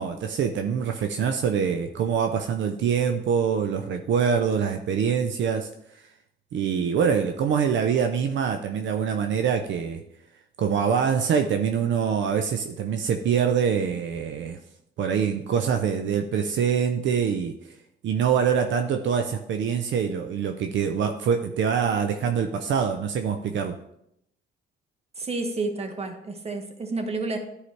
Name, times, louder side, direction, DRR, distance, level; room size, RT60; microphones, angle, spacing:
voice 1, 0.0-6.0 6.5-10.0 10.6-14.6 15.0-17.8 18.0-23.8, right 7 dB, 70° right, 6 dB, 0.6 m, -25 dB
voice 2, 25.2-27.4, right 3 dB, 30° right, 5 dB, 1.3 m, -30 dB
11.0 x 4.8 x 3.2 m, 0.78 s
cardioid pair, 90°, 20 cm